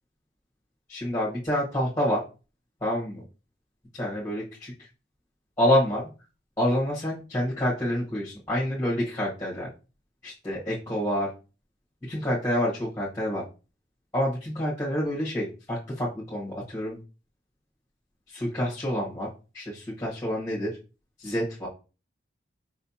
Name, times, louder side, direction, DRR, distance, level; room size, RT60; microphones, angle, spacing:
voice 1, 0.9-2.2 2.8-3.2 3.9-4.9 5.6-6.0 6.6-9.7 10.2-11.3 12.1-13.4 14.1-17.0 18.3-19.3 19.5-20.8 21.2-21.7, equal, 15° left, -6 dB, 1.4 m, -27 dB
5.0 x 3.3 x 2.7 m, 0.32 s
head